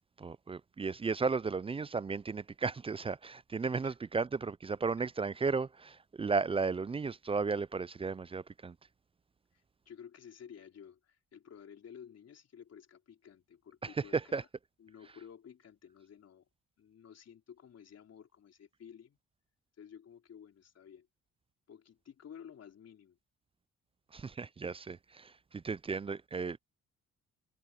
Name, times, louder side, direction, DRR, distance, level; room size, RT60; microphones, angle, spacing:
voice 1, 0.2-8.8 13.8-14.4 24.1-26.6, right 4 dB, 20° right, 0.4 m, -34 dB
voice 2, 9.5-14.5 14.8-16.5 16.8-19.2 19.8-21.1 21.7-23.2, left 8 dB, 55° left, 4.0 m, -53 dB
cardioid pair, 90°, 30 cm